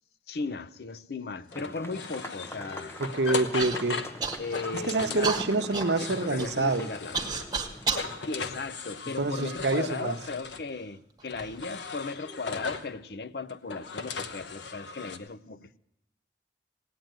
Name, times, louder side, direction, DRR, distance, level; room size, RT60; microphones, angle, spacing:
voice 1, 0.3-3.0 3.8-3.9 4.4-5.7 6.0-7.8 8.3-15.8, left 4 dB, 60° left, 0.6 m, -37 dB
sound 1, 1.5-7.6 7.8-10.7 11.3-12.9 13.5-15.2, left 4 dB, 85° left, 1.0 m, -38 dB
sound 2, 1.5-8.2, left 1 dB, 15° left, 0.7 m, -45 dB
voice 2, 3.0-4.0 4.7-6.9 9.2-10.2, right 3 dB, 70° right, 0.9 m, -27 dB
Human voice / Cough, 3.6-3.8 4.2-4.7 5.2-8.1 8.8-9.6 10.4-10.5 11.2-11.5, right 4 dB, 20° right, 1.4 m, -32 dB
17.0 x 9.2 x 9.0 m
head